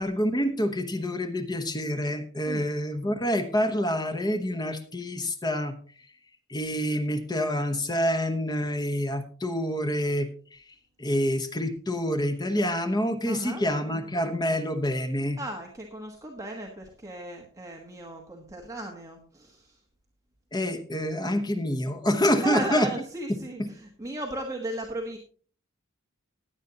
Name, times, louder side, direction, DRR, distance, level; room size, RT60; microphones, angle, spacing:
voice 1, 0.0-5.8 6.5-10.6 11.0-15.4 20.5-22.9 23.6-23.7, equal, 20° left, 7 dB, 1.0 m, -27 dB
voice 2, 13.3-13.6 15.4-19.8 22.4-25.2, right 1 dB, 15° right, 0 dB, 1.3 m, -36 dB
16.5 x 10.0 x 2.9 m, 0.43 s
head